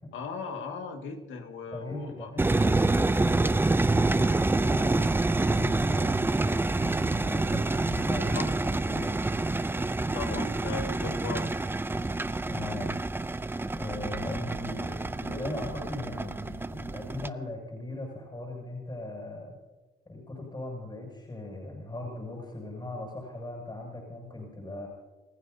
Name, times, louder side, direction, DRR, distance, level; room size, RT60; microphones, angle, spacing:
voice 1, 0.1-2.3 8.3-8.5 10.1-11.5, left 5 dB, 80° left, 4 dB, 2.0 m, -37 dB
voice 2, 1.7-9.1 12.4-12.9 13.7-19.6 20.1-24.9, left 2 dB, 25° left, 0 dB, 7.0 m, -39 dB
sound 1, 2.4-17.3, right 2 dB, 10° right, 0.5 m, -27 dB
29.5 x 15.5 x 2.8 m, 1.2 s
cardioid pair, 90°, 20 cm